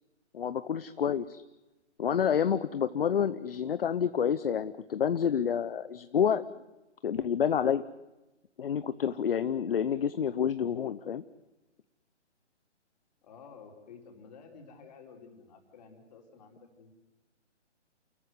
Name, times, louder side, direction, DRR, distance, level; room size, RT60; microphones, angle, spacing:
voice 1, 0.3-1.4 2.0-6.4 7.0-7.8 8.6-11.2, left 8 dB, 50° left, 13 dB, 0.8 m, -28 dB
voice 2, 13.2-16.9, left 5 dB, 35° left, 1 dB, 4.6 m, -52 dB
29.0 x 14.5 x 9.6 m, 1.0 s
hypercardioid pair, 155°, 36 cm